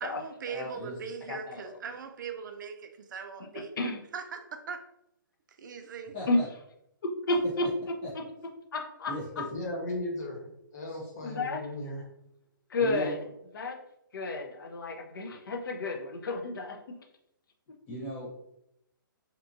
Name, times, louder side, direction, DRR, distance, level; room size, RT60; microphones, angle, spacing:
voice 1, 0.0-4.9 5.6-6.2, right 6 dB, 60° right, 8 dB, 0.4 m, -40 dB
voice 2, 1.3-1.6 3.8-4.0 6.3-6.4 7.0-7.7 8.1-8.2 8.7-9.1 11.2-11.6 12.7-13.2 13.5-13.8 14.1-16.8, left 2 dB, 70° left, 3 dB, 0.6 m, -31 dB
voice 3, 6.1-6.5 8.0-8.1 9.1-9.5 10.9-11.1 12.8-13.3 17.9-18.3, equal, 25° left, -6 dB, 0.6 m, -38 dB
voice 4, 9.5-12.0, left 1 dB, 50° left, -2 dB, 1.1 m, -36 dB
2.9 x 2.4 x 2.5 m, 0.79 s
hypercardioid pair, 150°, 12 cm